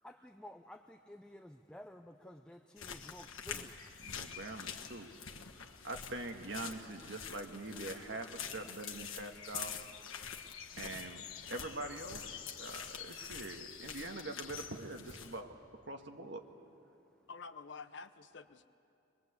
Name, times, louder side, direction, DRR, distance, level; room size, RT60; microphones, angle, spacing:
voice 1, 0.0-4.1 5.5-5.7 16.9-17.3, left 1 dB, 5° left, 5 dB, 0.5 m, -54 dB
sound 1, 2.8-15.4, left 7 dB, 90° left, 1.4 m, -46 dB
voice 2, 4.0-5.1 5.6-9.8 10.8-15.5 15.9-16.4, right 2 dB, 60° right, 4 dB, 1.6 m, -44 dB
voice 3, 17.3-18.7, left 5 dB, 60° left, 11 dB, 0.8 m, -49 dB
23.5 x 21.5 x 8.2 m, 2.6 s
head